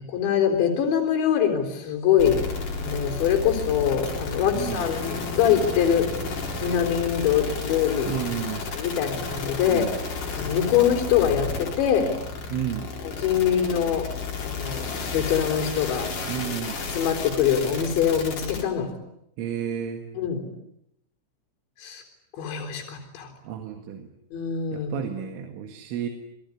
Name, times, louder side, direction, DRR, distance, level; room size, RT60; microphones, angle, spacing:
voice 1, 0.1-2.4 2.8-8.1 8.7-9.9 10.3-12.1 13.0-14.1 14.4-16.1 16.9-18.9 20.1-20.5 21.8-22.0 22.4-23.3 24.3-25.1, left 9 dB, 70° left, 2 dB, 6.0 m, -24 dB
sound 1, 2.2-18.6, left 4 dB, 45° left, 5.6 m, -32 dB
voice 2, 4.5-4.8 8.1-8.7 9.6-9.9 12.5-12.9 16.3-16.9 19.4-20.0 23.4-24.1 24.7-26.1, right 9 dB, 85° right, 5 dB, 4.4 m, -32 dB
28.0 x 22.0 x 9.8 m, 0.79 s
omnidirectional pair, 5.5 m